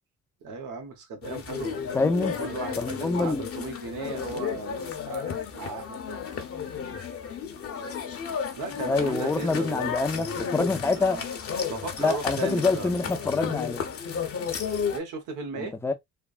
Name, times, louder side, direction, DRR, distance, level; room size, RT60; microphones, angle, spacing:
voice 1, 0.4-6.5 8.5-9.9 10.8-11.2 11.7-12.9 14.9-15.8, right 3 dB, 85° right, 1.1 m, -36 dB
sound 1, 1.2-15.0, left 7 dB, 50° left, 0.8 m, -33 dB
voice 2, 1.9-2.4 2.8-3.4 8.8-11.2 12.0-13.8 15.6-15.9, left 3 dB, 10° left, 0.5 m, -26 dB
3.3 x 2.1 x 2.4 m
cardioid pair, 90°, 30 cm